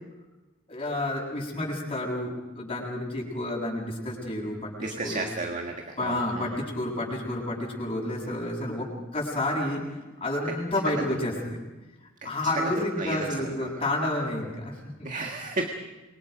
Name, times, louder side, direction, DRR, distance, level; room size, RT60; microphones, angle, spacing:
voice 1, 0.7-5.3 6.0-9.8 10.2-11.6 12.2-15.3, left 1 dB, 30° left, -2 dB, 7.0 m, -30 dB
voice 2, 4.8-6.6 10.8-11.0 12.5-13.7 15.0-15.6, right 2 dB, 40° right, 3 dB, 1.7 m, -33 dB
28.0 x 23.5 x 5.3 m, 1.1 s
head